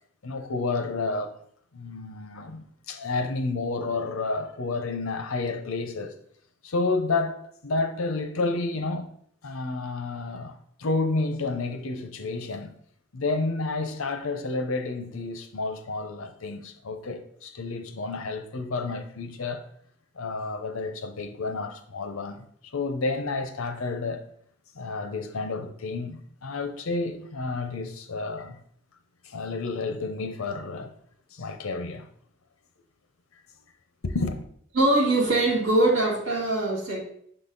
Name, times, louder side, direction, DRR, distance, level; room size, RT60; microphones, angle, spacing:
voice 1, 0.2-1.4 1.7-6.1 6.6-9.1 9.4-12.7 13.1-19.6 20.2-22.4 22.7-24.3 24.7-28.6 29.2-30.9 31.3-32.1 34.0-34.4, left 3 dB, 80° left, 0.7 m, -30 dB
voice 2, 34.7-37.0, right 2 dB, 75° right, 2.0 m, -22 dB
6.4 x 4.0 x 3.9 m
head